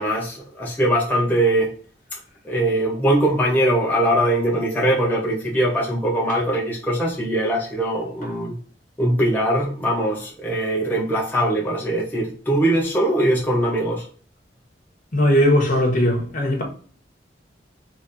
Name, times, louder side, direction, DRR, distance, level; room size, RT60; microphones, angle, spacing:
voice 1, 0.0-1.7 2.4-8.6 9.0-14.0, right 1 dB, 10° left, 0.9 m, -21 dB
voice 2, 15.1-16.6, equal, 50° left, 1.5 m, -18 dB
3.4 x 3.4 x 4.1 m
head